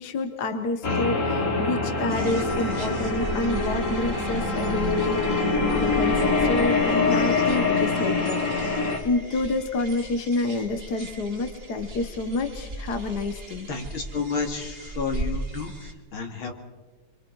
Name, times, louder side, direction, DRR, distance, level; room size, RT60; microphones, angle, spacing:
voice 1, 0.0-13.7, left 3 dB, 50° left, 7 dB, 1.6 m, -29 dB
sound 1, 0.8-9.0, left 3 dB, 35° left, 2.4 m, -24 dB
sound 2, 2.1-15.9, right 2 dB, 30° right, 1.9 m, -37 dB
voice 2, 13.7-16.5, left 5 dB, 65° left, 2 dB, 3.2 m, -31 dB
26.5 x 25.5 x 4.7 m, 1.2 s
omnidirectional pair, 2.4 m